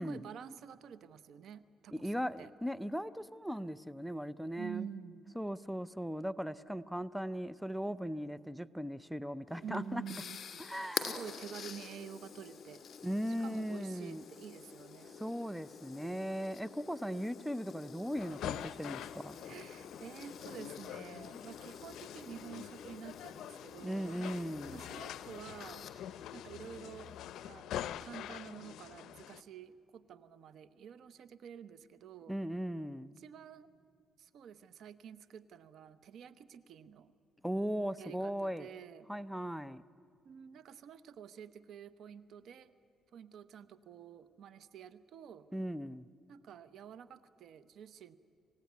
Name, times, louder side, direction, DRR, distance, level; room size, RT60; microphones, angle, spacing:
voice 1, 0.0-2.5 4.6-5.4 9.6-12.8 13.4-15.2 19.4-24.2 24.7-25.9 26.3-27.2 27.5-32.3 33.2-33.7 34.2-37.1 38.0-39.1 40.2-42.7 43.1-45.5 46.3-48.2, right 8 dB, 70° right, 14 dB, 0.9 m, -49 dB
voice 2, 1.9-4.9 5.4-10.0 10.6-11.2 13.0-14.2 15.1-19.4 23.8-24.8 32.3-33.2 37.4-38.7 39.1-39.8 45.5-46.1, equal, ahead, 16 dB, 0.6 m, -38 dB
sound 1, 9.5-27.5, left 7 dB, 60° left, 2.3 m, -48 dB
sound 2, 18.2-29.4, left 11 dB, 80° left, 0.6 m, -45 dB
28.0 x 16.5 x 9.5 m, 2.4 s
cardioid pair, 90°, 0 cm